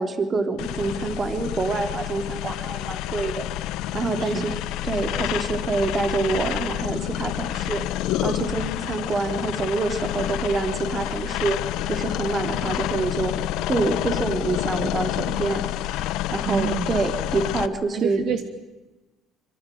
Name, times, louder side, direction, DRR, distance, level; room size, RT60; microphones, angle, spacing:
voice 1, 0.0-3.5 3.9-4.5 4.8-7.8 8.2-11.6 11.9-13.3 13.7-15.6 15.9-16.0 16.3-18.2, right 3 dB, 30° right, 6 dB, 3.6 m, -26 dB
sound 1, 0.6-17.7, left 14 dB, 80° left, 1.2 m, -28 dB
voice 2, 4.2-4.6 16.4-17.0 17.9-18.4, right 9 dB, 60° right, 7 dB, 2.4 m, -28 dB
25.0 x 24.5 x 9.4 m, 1.1 s
cardioid pair, 130°, 0 cm